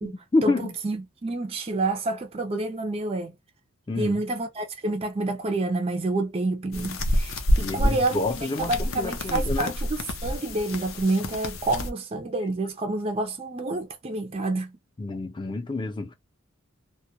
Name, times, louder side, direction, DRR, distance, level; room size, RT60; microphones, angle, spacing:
voice 1, 0.0-0.8 3.9-4.2 7.6-9.8 15.0-16.1, left 2 dB, 25° left, 0.5 m, -28 dB
voice 2, 0.8-3.3 4.0-14.8, right 2 dB, 30° right, 0.4 m, -28 dB
sound 1, 6.7-11.9, equal, 75° left, 0.6 m, -28 dB
2.2 x 2.1 x 2.7 m
head